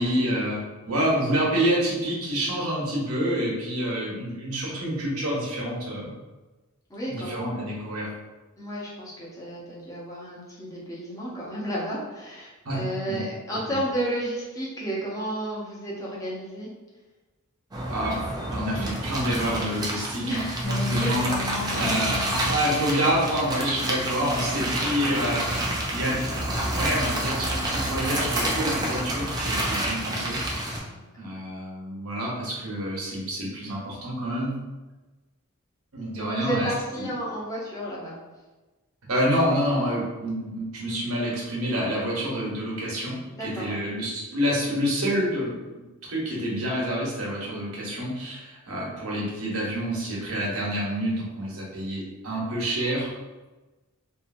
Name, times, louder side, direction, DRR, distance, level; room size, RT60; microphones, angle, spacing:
voice 1, 0.0-6.1 7.1-8.1 12.6-12.8 13.1-13.2 13.7-13.8 17.9-18.2 18.5-21.3 21.7-22.2 22.5-26.3 26.7-30.4 31.2-34.5 35.9-36.7 37.0-37.1 39.1-45.6 46.1-53.1, equal, 80° right, -4 dB, 1.0 m, -27 dB
voice 2, 6.9-7.4 8.6-16.7 20.2-20.7 21.0-22.1 23.6-23.9 31.0-31.1 36.2-38.2 43.3-43.8, right 1 dB, 15° left, -6 dB, 0.7 m, -32 dB
sound 1, 17.7-30.8, right 1 dB, 20° right, 0.4 m, -28 dB
Bass guitar, 20.6-26.9, left 7 dB, 55° left, 0.6 m, -40 dB
2.7 x 2.5 x 2.5 m, 1.2 s
head